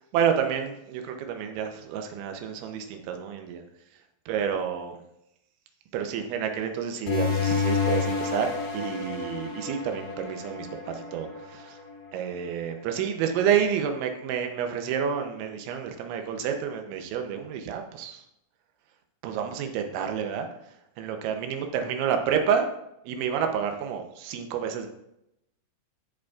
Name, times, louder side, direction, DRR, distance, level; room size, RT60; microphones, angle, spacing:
voice 1, 0.1-3.6 4.3-4.9 5.9-11.8 12.1-18.2 19.2-20.5 21.0-22.7 23.1-24.9, right 8 dB, 90° right, 5 dB, 3.1 m, -29 dB
sound 1, 7.1-12.3, left 5 dB, 75° left, 3.6 m, -30 dB
15.0 x 5.0 x 2.4 m, 0.82 s
omnidirectional pair, 5.2 m